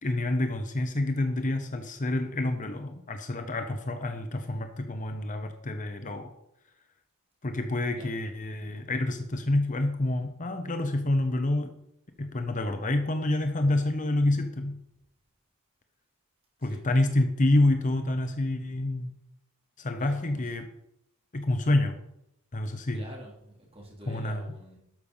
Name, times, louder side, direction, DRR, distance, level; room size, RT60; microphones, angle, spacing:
voice 1, 0.0-6.3 7.4-11.7 12.2-14.7 16.6-19.1 19.8-20.7 21.3-22.0 22.5-23.0 24.1-24.5, left 2 dB, 35° left, 7 dB, 0.9 m, -28 dB
voice 2, 16.6-16.9 20.2-20.4 22.9-24.8, equal, 25° right, -1 dB, 3.3 m, -47 dB
12.0 x 6.9 x 5.5 m, 0.80 s
head